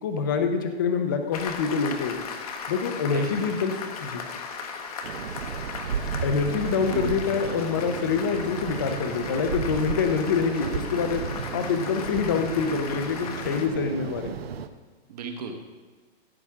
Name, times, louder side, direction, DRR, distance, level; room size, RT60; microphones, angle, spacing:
voice 1, 0.0-2.2 2.7-3.7 4.0-4.2 6.2-11.2 11.5-14.3, left 5 dB, 20° left, 6 dB, 0.6 m, -26 dB
Applause, 1.3-13.7, left 5 dB, 35° left, 1.0 m, -37 dB
voice 2, 3.0-3.5 6.9-7.6 15.1-15.5, right 5 dB, 35° right, 4 dB, 1.3 m, -36 dB
sound 1, 5.0-14.7, right 7 dB, 65° right, 0.9 m, -34 dB
15.5 x 8.5 x 3.6 m, 1.5 s
hypercardioid pair, 175°, 33 cm